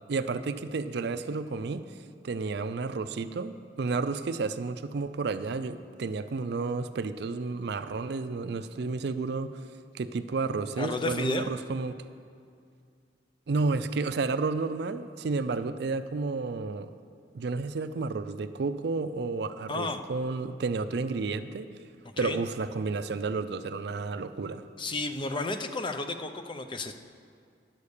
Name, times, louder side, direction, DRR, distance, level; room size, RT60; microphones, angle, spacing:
voice 1, 0.1-1.9 2.2-9.6 9.9-12.0 13.5-16.9 17.3-21.7 22.2-24.6, right 4 dB, 65° right, 11 dB, 0.4 m, -31 dB
voice 2, 10.8-11.5 19.7-20.0 22.2-22.4 24.8-26.9, left 3 dB, 30° left, 7 dB, 0.5 m, -32 dB
10.5 x 7.0 x 6.6 m, 2.3 s
head